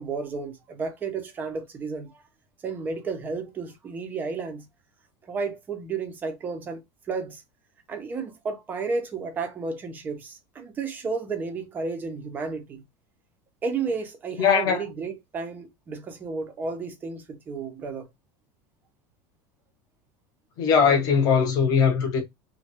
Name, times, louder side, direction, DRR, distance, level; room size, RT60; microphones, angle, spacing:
voice 1, 0.0-2.1 2.6-4.7 5.3-7.4 7.9-12.8 13.6-18.1, right 4 dB, 15° right, 0.5 m, -32 dB
voice 2, 14.4-14.8 20.6-22.2, left 6 dB, 35° left, 0.8 m, -20 dB
3.0 x 2.1 x 2.9 m
cardioid pair, 180°, 12 cm